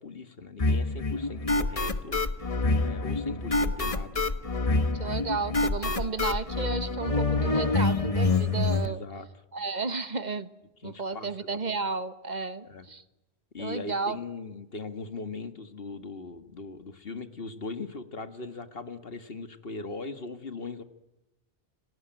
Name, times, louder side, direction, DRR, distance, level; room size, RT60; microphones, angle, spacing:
voice 1, 0.0-2.2 2.7-4.2 4.7-4.9 8.8-9.3 10.8-11.8 12.6-12.9 13.5-20.8, left 3 dB, 65° left, 9 dB, 1.9 m, -40 dB
sound 1, 0.6-8.9, left 3 dB, 35° left, 1.3 m, -26 dB
voice 2, 4.9-9.0 9.5-10.6 10.8-13.0 13.6-14.2, right 4 dB, 45° right, 12 dB, 1.4 m, -33 dB
29.5 x 18.5 x 9.0 m, 0.97 s
omnidirectional pair, 1.1 m